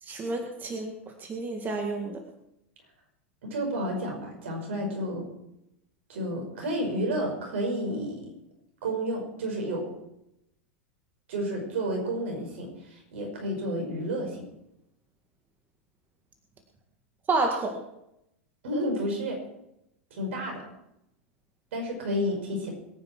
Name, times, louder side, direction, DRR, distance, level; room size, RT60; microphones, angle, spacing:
voice 1, 0.0-0.9 1.2-2.2 17.3-17.8, right 3 dB, 25° right, 4 dB, 1.9 m, -29 dB
voice 2, 3.4-5.3 6.1-8.2 8.8-9.9 11.3-14.4 18.6-19.4 20.1-20.6 21.7-22.7, equal, 70° right, 2 dB, 5.5 m, -31 dB
22.5 x 9.6 x 4.5 m, 0.83 s
hypercardioid pair, 95°, 7 cm